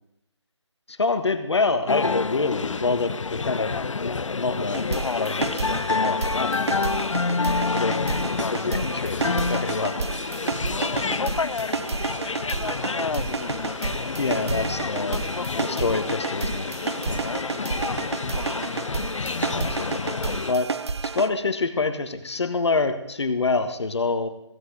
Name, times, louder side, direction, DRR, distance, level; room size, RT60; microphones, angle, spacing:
voice 1, 0.9-3.7 4.0-4.8 5.2-6.9 7.7-8.1 8.5-9.9 14.1-15.2 15.6-16.7 19.4-20.2 20.5-20.7 21.0-24.3, left 3 dB, 60° left, 8 dB, 1.5 m, -26 dB
sound 1, 1.9-20.5, left 4 dB, 85° left, 0.6 m, -28 dB
sound 2, 4.7-21.3, right 4 dB, 60° right, 0.8 m, -31 dB
voice 2, 7.5-8.5 9.2-10.3 10.9-13.6 14.4-14.8 17.5-18.6, left 6 dB, 20° left, 10 dB, 0.6 m, -44 dB
15.5 x 5.9 x 8.0 m, 0.83 s
figure-of-eight pair, 165°, 16 cm